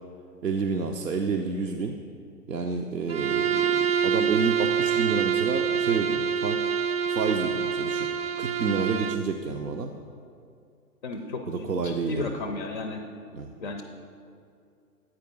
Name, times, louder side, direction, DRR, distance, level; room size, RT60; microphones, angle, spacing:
voice 1, 0.4-2.0 2.5-6.6 7.1-8.1 8.4-9.9 11.5-12.4 13.3-13.5, right 4 dB, 90° right, 3 dB, 0.6 m, -29 dB
Bowed string instrument, 3.1-9.3, right 7 dB, 45° right, 0.4 m, -26 dB
voice 2, 11.0-13.0 13.6-13.8, left 3 dB, 35° left, 5 dB, 0.4 m, -34 dB
8.8 x 4.6 x 5.2 m, 2.4 s
figure-of-eight pair, 115°, 46 cm